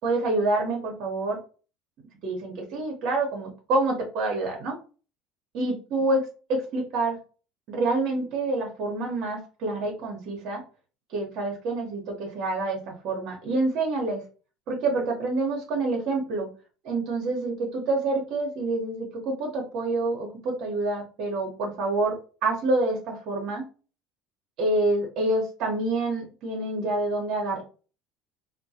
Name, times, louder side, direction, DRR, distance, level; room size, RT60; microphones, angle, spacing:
voice 1, 0.0-1.4 2.2-4.7 5.5-6.2 6.5-7.2 7.7-10.6 11.1-14.2 14.7-16.5 16.8-22.2 22.4-23.6 24.6-27.6, right 2 dB, 60° right, 1 dB, 0.9 m, -27 dB
2.2 x 2.1 x 2.7 m, 0.36 s
supercardioid pair, 120°, 0 cm